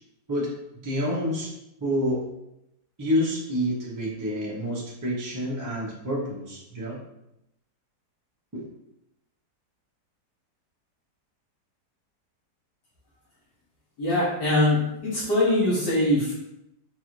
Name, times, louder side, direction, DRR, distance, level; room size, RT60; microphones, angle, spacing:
voice 1, 0.8-1.5 1.8-2.3 3.0-7.0 8.5-8.6, equal, 25° right, -5 dB, 0.4 m, -28 dB
voice 2, 14.0-16.3, left 1 dB, 85° left, -8 dB, 1.6 m, -22 dB
4.7 x 2.4 x 3.1 m, 0.84 s
omnidirectional pair, 1.8 m